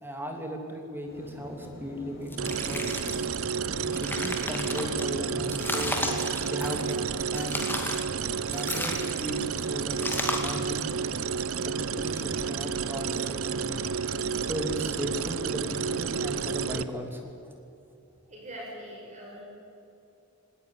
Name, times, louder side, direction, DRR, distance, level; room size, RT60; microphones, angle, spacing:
voice 1, 0.0-3.0 3.8-6.0 6.5-7.0 7.3-7.6 8.5-10.9 11.6-13.8 14.4-17.3, equal, 10° right, 3 dB, 2.9 m, -36 dB
sound 1, 1.1-6.8, equal, 45° left, 6.6 m, -44 dB
sound 2, 2.3-3.4 3.8-5.1 5.5-7.0 7.3-8.1 8.5-9.4 10.0-10.7, left 2 dB, 10° left, 2.2 m, -34 dB
sound 3, 2.4-16.8, right 6 dB, 65° right, 0.7 m, -31 dB
voice 2, 18.3-19.4, equal, 30° right, -3 dB, 5.8 m, -42 dB
19.5 x 18.5 x 10.0 m, 2.8 s
head